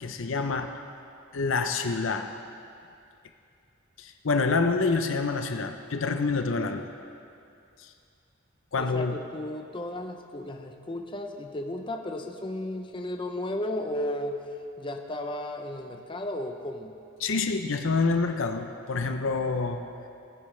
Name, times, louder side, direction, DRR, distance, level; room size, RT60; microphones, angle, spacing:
voice 1, 0.0-0.7 1.3-2.3 4.0-6.9 7.8-7.9 8.7-9.1 17.2-19.9, left 4 dB, 75° left, 7 dB, 0.7 m, -27 dB
voice 2, 8.7-14.4 14.8-16.9, left 1 dB, 25° left, 4 dB, 0.6 m, -34 dB
18.5 x 9.5 x 3.3 m, 2.5 s
head